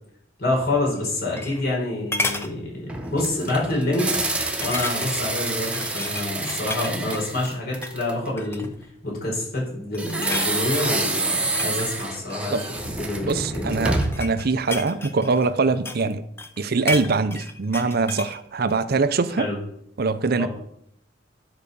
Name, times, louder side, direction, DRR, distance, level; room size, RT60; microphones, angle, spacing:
voice 1, 0.4-4.1 4.6-8.7 9.0-14.0 19.4-19.6 20.4-20.5, left 2 dB, 55° left, 4.8 m, -27 dB
sound 1, 1.0-1.8 2.1-2.5 3.0-3.3 3.6-3.7 4.6-5.3 5.6-7.3 7.7-8.0 8.4-8.9 9.4-9.7 9.9-10.5 11.3-12.9 13.7-16.1 16.4-18.4 18.7-18.8, left 2 dB, 15° left, 0.8 m, -32 dB
sound 2, 2.9-8.3 10.0-14.3, right 2 dB, 5° right, 1.1 m, -28 dB
voice 2, 13.2-16.2 16.6-19.5 20.0-20.5, right 4 dB, 55° right, 0.6 m, -23 dB
10.5 x 4.9 x 6.8 m
head